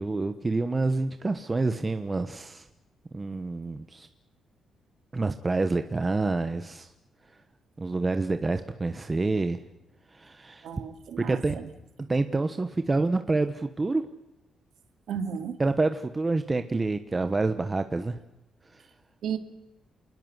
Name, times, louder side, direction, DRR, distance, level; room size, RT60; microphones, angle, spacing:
voice 1, 0.0-2.7 3.1-4.1 5.1-6.9 7.8-9.6 10.1-10.7 11.2-11.6 12.0-14.0 15.6-18.2 18.7-18.9, right 3 dB, 20° right, 9 dB, 1.1 m, -27 dB
voice 2, 10.6-11.7 15.1-15.6 19.2-19.4, right 7 dB, 65° right, 8 dB, 2.6 m, -33 dB
28.0 x 20.5 x 8.0 m, 0.91 s
cardioid pair, 155°, 0 cm